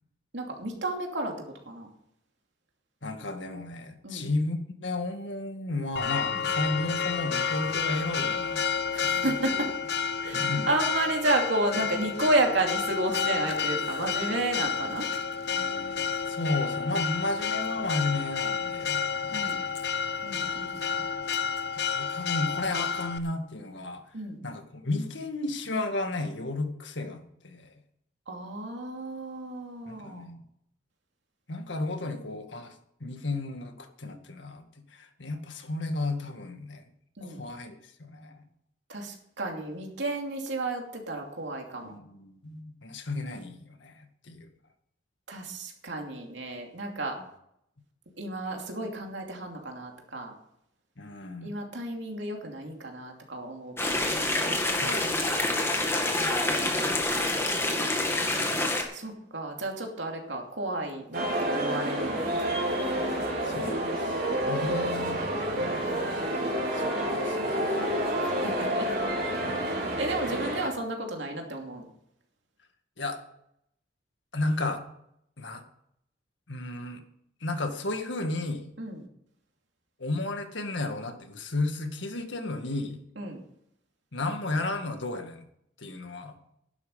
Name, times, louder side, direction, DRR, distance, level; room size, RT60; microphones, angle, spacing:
voice 1, 0.3-1.3 1.7-1.9 4.0-4.3 6.3-6.4 8.9-9.7 10.2-15.1 19.3-19.6 20.2-21.0 24.1-24.4 28.3-30.2 37.2-37.4 38.9-41.9 45.3-47.2 48.2-50.3 51.4-54.0 55.8-57.0 58.2-62.3 65.5-66.5 68.2-68.9 69.6-71.9 78.8-79.1 83.2-83.4, right 2 dB, 70° right, 2 dB, 2.7 m, -32 dB
voice 2, 3.0-8.7 9.0-9.4 10.3-10.7 15.4-19.5 20.3-20.6 20.9-21.3 21.8-24.0 24.4-27.7 29.9-30.4 31.5-32.7 33.0-36.8 37.2-38.4 41.8-44.5 51.0-51.5 54.7-56.0 57.4-57.8 63.4-65.2 65.6-66.4 66.7-67.8 69.4-70.0 70.3-70.4 73.0-73.2 74.3-74.8 75.4-75.6 76.5-77.0 77.4-78.7 80.0-83.0 84.1-85.5 85.8-86.4, left 2 dB, 75° left, 6 dB, 1.8 m, -34 dB
Church bell, 6.0-23.2, left 6 dB, 60° left, 0.8 m, -30 dB
sound 1, 53.8-58.8, left 2 dB, 15° left, 1.8 m, -27 dB
sound 2, 61.1-70.7, right 1 dB, 50° right, 4.2 m, -29 dB
12.0 x 11.0 x 5.5 m, 0.75 s
head